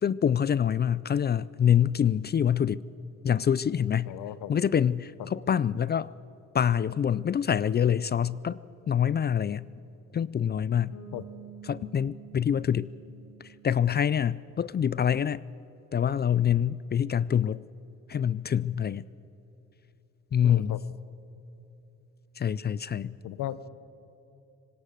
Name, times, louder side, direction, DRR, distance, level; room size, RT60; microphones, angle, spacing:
voice 1, 0.0-2.8 3.2-4.1 4.5-6.1 6.5-8.6 8.9-9.7 10.1-10.9 11.6-12.9 13.4-15.4 15.9-17.6 18.1-19.1 20.3-20.8 22.4-23.2, left 8 dB, 35° left, 20 dB, 0.4 m, -26 dB
voice 2, 4.1-4.5 5.2-5.3 11.1-11.2 20.4-20.8 23.2-23.7, left 12 dB, 85° left, 16 dB, 0.9 m, -36 dB
Bass guitar, 10.9-14.6, right 8 dB, 55° left, 2.9 m, -49 dB
24.5 x 19.5 x 6.6 m, 2.9 s
cardioid pair, 90°, 30 cm